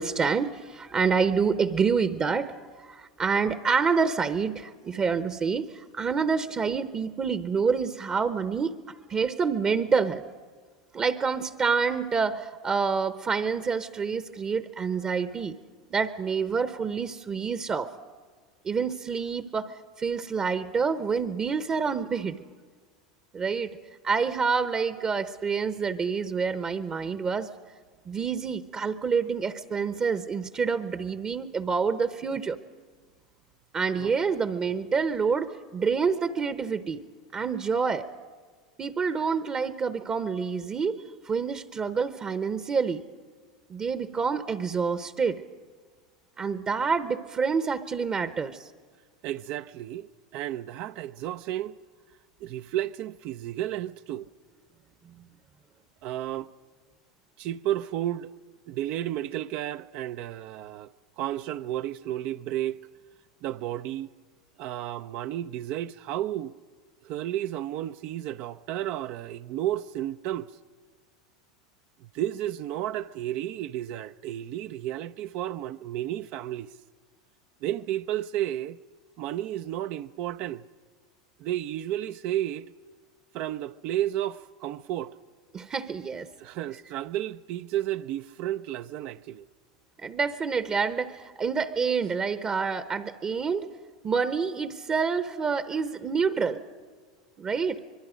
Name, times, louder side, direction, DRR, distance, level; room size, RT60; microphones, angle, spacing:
voice 1, 0.0-2.5 2.8-10.2 10.9-15.6 15.9-17.9 18.6-22.4 23.3-23.7 24.0-27.5 28.1-32.6 33.7-37.0 37.3-38.1 38.8-43.0 43.7-45.4 46.4-48.7 55.0-55.2 85.5-86.3 90.0-93.7 94.0-96.6 97.4-97.8, right 5 dB, 30° right, 0.9 m, -27 dB
voice 2, 49.2-50.1 50.3-51.8 52.4-54.3 56.0-56.5 57.4-58.3 58.7-60.9 61.2-62.8 63.4-64.1 64.6-66.5 67.0-70.5 72.0-76.7 77.6-78.8 79.2-80.6 81.4-82.7 83.3-85.2 86.4-89.5, right 12 dB, 55° right, 0.5 m, -32 dB
25.0 x 22.0 x 5.1 m
hypercardioid pair, 95°, 3 cm